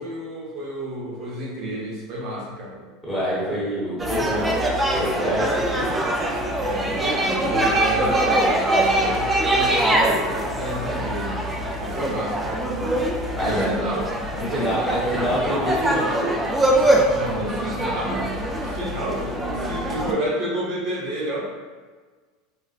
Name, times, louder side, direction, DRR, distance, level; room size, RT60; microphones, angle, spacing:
voice 1, 0.0-2.8 6.6-11.5 11.8-14.1 14.3-14.8 17.1-21.4, right 1 dB, 45° right, -3 dB, 0.8 m, -30 dB
voice 2, 3.1-4.5 4.9-5.9 13.4-13.7 14.4-16.3, equal, 5° left, -9 dB, 0.9 m, -25 dB
sound 1, 4.0-20.1, right 1 dB, 10° right, 0.3 m, -23 dB
3.9 x 2.1 x 2.3 m, 1.5 s
supercardioid pair, 155°, 0 cm